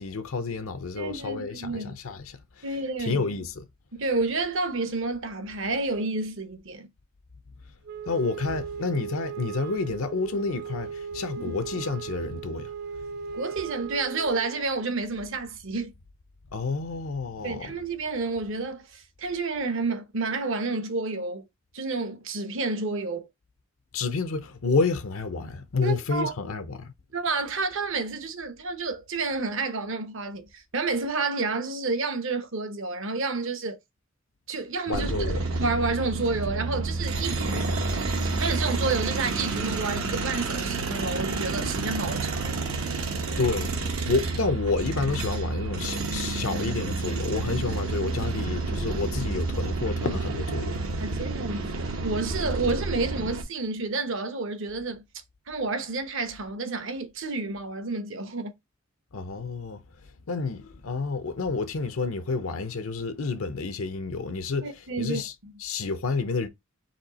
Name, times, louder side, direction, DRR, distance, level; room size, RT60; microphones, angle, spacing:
voice 1, 0.0-2.7 3.0-3.7 8.1-12.7 13.0-13.4 16.5-17.7 23.9-26.9 34.9-35.4 43.4-50.8 59.1-59.8 60.3-65.3 65.6-66.5, left 4 dB, 80° left, 0.7 m, -29 dB
voice 2, 1.0-1.9 2.6-3.3 3.9-6.9 11.4-11.6 13.3-15.9 17.4-21.4 21.7-23.3 25.8-26.3 27.1-33.8 34.5-37.7 38.4-42.7 48.2-48.3 51.0-55.0 55.5-58.5 64.6-65.5, right 3 dB, 65° right, 0.9 m, -30 dB
Wind instrument woodwind instrument, 7.9-14.7, right 7 dB, 50° right, 0.4 m, -37 dB
sound 1, 34.9-53.4, right 3 dB, 85° right, 1.1 m, -29 dB
4.4 x 2.8 x 4.1 m
head